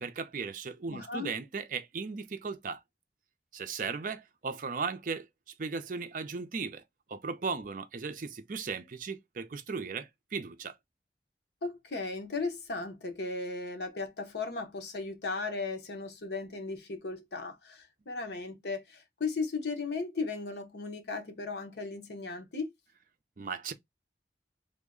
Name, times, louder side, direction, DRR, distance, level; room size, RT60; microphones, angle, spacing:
voice 1, 0.0-2.8 3.5-5.3 5.6-6.8 7.1-10.8 23.4-23.7, right 5 dB, 50° right, 0.5 m, -36 dB
voice 2, 0.9-1.3 11.6-22.7, left 3 dB, 75° left, 0.8 m, -36 dB
3.5 x 2.1 x 3.6 m
head